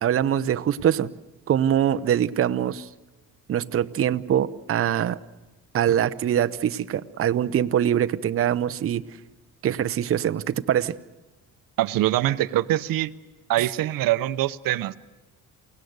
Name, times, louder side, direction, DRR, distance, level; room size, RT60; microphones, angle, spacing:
voice 1, 0.0-1.1 1.5-2.9 3.5-5.2 5.7-9.0 9.6-10.9, right 10 dB, 40° right, 10 dB, 0.7 m, -23 dB
voice 2, 11.8-13.1 13.5-15.0, right 14 dB, 75° right, 13 dB, 0.8 m, -23 dB
28.5 x 17.5 x 8.0 m, 1.2 s
cardioid pair, 130°, 34 cm